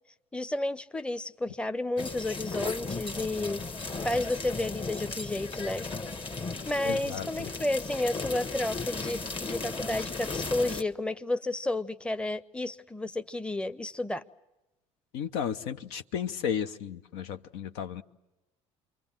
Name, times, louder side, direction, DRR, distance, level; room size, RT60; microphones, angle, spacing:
voice 1, 0.3-3.6 4.0-5.9 6.7-14.2, left 2 dB, 5° left, 0.8 m, -31 dB
sound 1, 2.0-10.8, left 3 dB, 30° left, 1.5 m, -36 dB
voice 2, 6.8-7.5 15.1-18.0, left 8 dB, 70° left, 0.8 m, -34 dB
27.5 x 23.5 x 7.5 m
hypercardioid pair, 65°, 16 cm